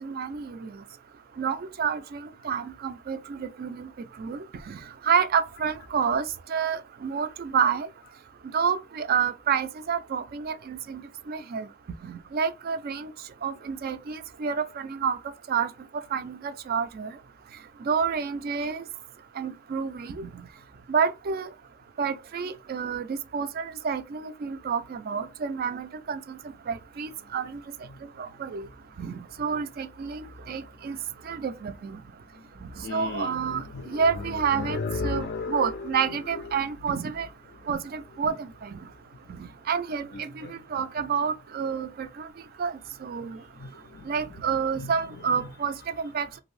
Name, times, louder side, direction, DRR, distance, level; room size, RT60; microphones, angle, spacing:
voice 1, 0.0-0.7 1.4-2.2 2.4-3.9 4.2-4.4 4.7-4.8 5.1-6.2 6.5-7.9 8.5-11.0 11.3-11.7 12.1-13.1 13.4-15.2 15.5-15.7 16.1-17.1 17.9-18.8 19.4-20.3 20.9-21.5 22.0-26.4 26.7-27.6 28.4-28.6 29.0-30.2 30.5-31.0 31.3-31.7 32.9-37.3 37.7-38.5 39.7-40.5 40.7-42.1 42.6-42.7 43.0-43.4 44.1-46.3, right 6 dB, 50° right, 0.3 m, -29 dB
voice 2, 32.8-37.0 37.6-37.7 38.0-38.1 40.1-40.6 41.0-41.1 43.2-46.4, left 4 dB, 50° left, 0.3 m, -37 dB
2.7 x 2.6 x 3.1 m
head